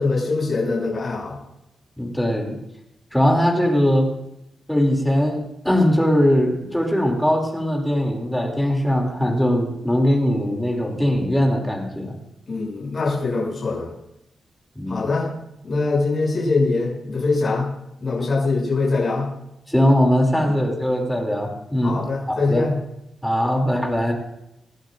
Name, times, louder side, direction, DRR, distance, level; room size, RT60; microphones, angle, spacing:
voice 1, 0.0-1.4 12.5-13.9 14.9-15.3 15.6-17.7 18.0-19.3 21.8-22.8, left 3 dB, 35° left, -5 dB, 6.6 m, -23 dB
voice 2, 2.0-2.6 3.1-4.1 4.7-12.1 14.7-15.0 19.7-22.0 22.3-22.7 23.2-24.1, equal, ahead, 0 dB, 2.6 m, -20 dB
27.0 x 11.5 x 2.5 m, 0.84 s
wide cardioid pair, 145°, 0 cm